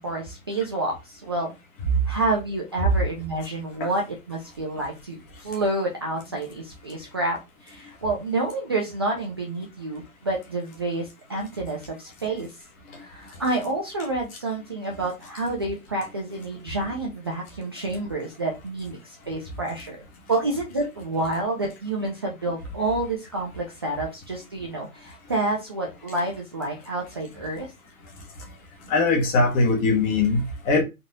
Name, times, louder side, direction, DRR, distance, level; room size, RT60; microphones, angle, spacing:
voice 1, 0.0-1.5 2.1-12.6 12.9-27.7, right 2 dB, 20° right, 0.4 m, -29 dB
voice 2, 28.9-30.8, left 3 dB, 15° left, 1.0 m, -21 dB
4.8 x 4.2 x 2.6 m
hypercardioid pair, 150°, 44 cm